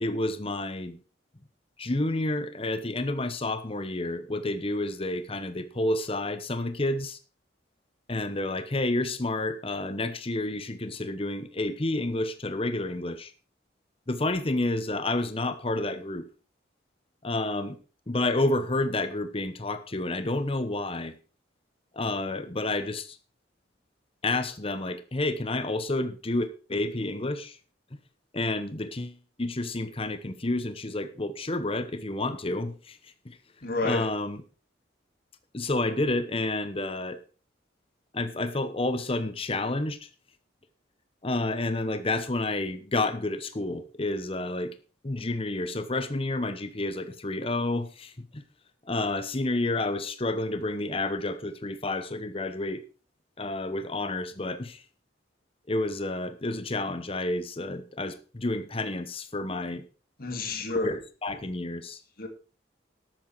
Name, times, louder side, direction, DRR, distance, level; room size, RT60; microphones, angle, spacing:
voice 1, 0.0-1.0 1.8-7.2 8.1-13.3 14.1-16.3 17.2-17.8 18.1-21.1 21.9-23.2 24.2-27.6 28.3-33.0 33.2-33.4 33.8-34.4 35.5-37.2 38.1-40.1 41.2-44.7 45.0-48.4 48.9-52.8 53.4-54.8 55.7-59.8 60.8-62.0, left 2 dB, 30° left, 0.9 m, -30 dB
voice 2, 33.6-34.1 60.2-61.0 62.2-62.3, left 3 dB, 50° left, 2.4 m, -30 dB
12.5 x 8.8 x 4.7 m
head